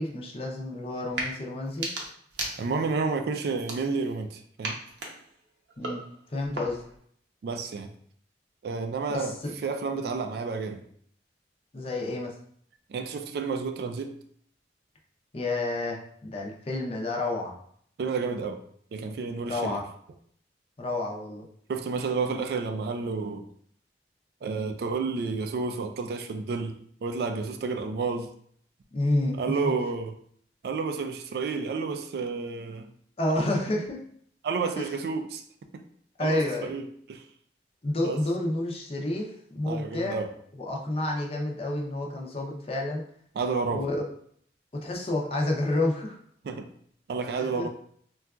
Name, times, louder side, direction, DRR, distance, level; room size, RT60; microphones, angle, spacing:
voice 1, 0.0-1.9 5.8-6.0 6.3-6.8 9.1-9.5 11.7-12.3 15.3-17.5 19.5-19.8 20.8-21.5 28.9-29.4 29.6-29.7 33.2-34.0 34.8-34.9 36.2-36.7 37.8-40.2 40.6-43.0 43.7-44.0 44.8-46.2 47.4-47.7, left 2 dB, 35° left, 0 dB, 0.5 m, -29 dB
sound 1, 1.0-1.3 1.7-3.0 3.5-4.2 4.6-7.0, right 2 dB, 85° right, 0.6 m, -37 dB
voice 2, 2.6-4.8 7.4-7.9 8.6-9.3 9.6-10.8 12.9-14.1 18.0-18.6 18.9-19.8 21.7-23.5 24.4-26.7 27.0-28.3 29.4-30.1 30.6-32.9 34.4-35.4 36.2-37.2 38.0-38.2 39.7-40.3 43.4-43.9 46.4-46.7 47.1-47.7, right 4 dB, 60° right, 6 dB, 0.3 m, -30 dB
3.8 x 2.3 x 2.3 m, 0.63 s
head